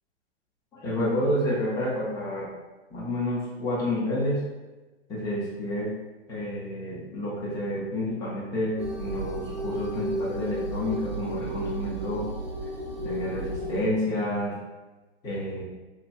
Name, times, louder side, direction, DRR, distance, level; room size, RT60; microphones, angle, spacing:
voice 1, 0.7-2.5 2.9-4.4 5.1-5.9 6.3-12.2 13.0-14.5 15.2-15.6, left 1 dB, 10° left, -6 dB, 0.4 m, -29 dB
sound 1, 8.8-13.8, equal, 45° right, 0.5 m, -33 dB
2.7 x 2.1 x 2.3 m, 1.2 s
figure-of-eight pair, 115°, 33 cm